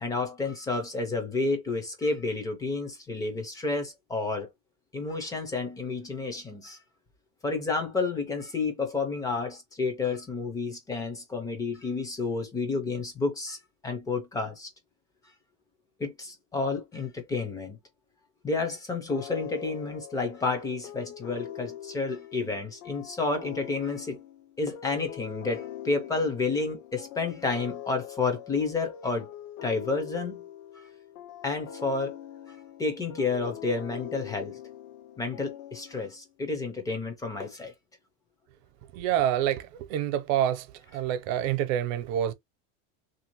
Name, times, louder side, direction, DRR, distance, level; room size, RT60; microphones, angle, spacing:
voice 1, 0.0-4.5 4.9-6.8 7.4-13.6 13.8-14.7 16.0-17.8 18.4-24.2 24.6-29.3 29.6-30.4 30.7-30.9 31.4-32.2 32.5-34.6 35.2-37.7, left 3 dB, 10° left, 0.4 m, -30 dB
sound 1, 19.1-36.3, left 11 dB, 65° left, 0.7 m, -43 dB
voice 2, 38.9-40.7 40.9-42.3, right 10 dB, 75° right, 0.8 m, -27 dB
3.2 x 2.6 x 2.9 m
cardioid pair, 170°, 39 cm